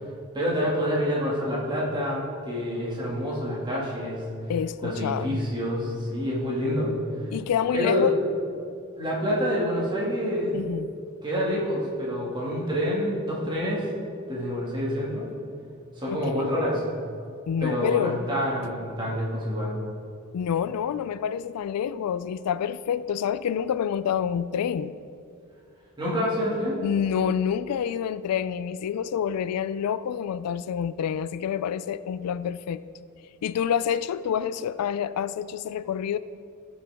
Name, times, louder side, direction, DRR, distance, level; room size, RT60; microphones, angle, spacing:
voice 1, 0.3-4.2 4.8-6.9 7.7-8.1 9.0-10.6 11.2-13.8 14.3-15.3 16.0-16.8 17.6-19.8 26.0-26.8, equal, 20° right, -5 dB, 2.1 m, -27 dB
voice 2, 4.5-5.4 7.3-8.1 10.5-10.9 16.1-16.5 17.5-18.2 18.6-18.7 20.3-24.9 26.8-32.8 33.4-36.2, left 8 dB, 85° left, 16 dB, 0.3 m, -28 dB
15.5 x 6.1 x 3.5 m, 2.4 s
head